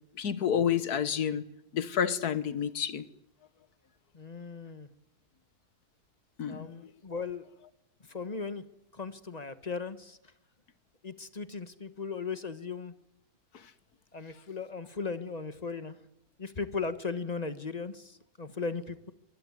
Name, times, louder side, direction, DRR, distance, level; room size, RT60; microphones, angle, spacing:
voice 1, 0.2-1.4 1.7-3.0 6.4-6.7, left 8 dB, 75° left, 14 dB, 1.7 m, -29 dB
voice 2, 4.1-4.9 6.5-7.5 8.1-8.6 8.9-10.2 11.0-12.9 14.1-15.9 16.4-19.1, left 4 dB, 30° left, 12 dB, 1.2 m, -37 dB
24.5 x 19.5 x 9.7 m, 0.84 s
omnidirectional pair, 1.7 m